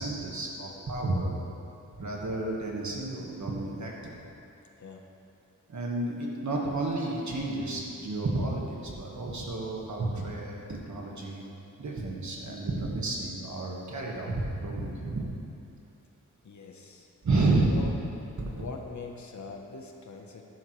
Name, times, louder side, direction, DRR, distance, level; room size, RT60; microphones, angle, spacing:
voice 1, 0.0-1.3 2.0-4.2 5.7-11.5 11.8-14.3 14.6-15.2 17.2-17.9 18.4-18.5, right 2 dB, 60° right, -2 dB, 1.7 m, -31 dB
voice 2, 16.4-17.1 17.6-18.0 18.5-20.4, left 4 dB, 60° left, 2 dB, 1.0 m, -43 dB
11.5 x 10.5 x 3.2 m, 2.8 s
wide cardioid pair, 120°, 32 cm